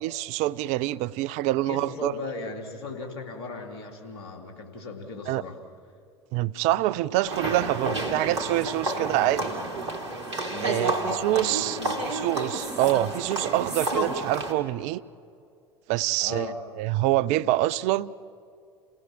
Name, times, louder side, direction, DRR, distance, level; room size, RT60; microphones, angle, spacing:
voice 1, 0.0-2.1 5.3-5.4 6.3-9.5 10.6-15.0 15.9-16.5 16.8-18.1, right 15 dB, 55° right, 0.6 m, -26 dB
voice 2, 1.6-5.6 9.0-9.3 10.5-11.0 11.4-12.0 16.2-16.6, left 3 dB, 65° left, 3.6 m, -37 dB
sound 1, 7.3-14.5, right 2 dB, 75° right, 2.9 m, -30 dB
30.0 x 17.5 x 7.6 m
figure-of-eight pair, 70°, 14 cm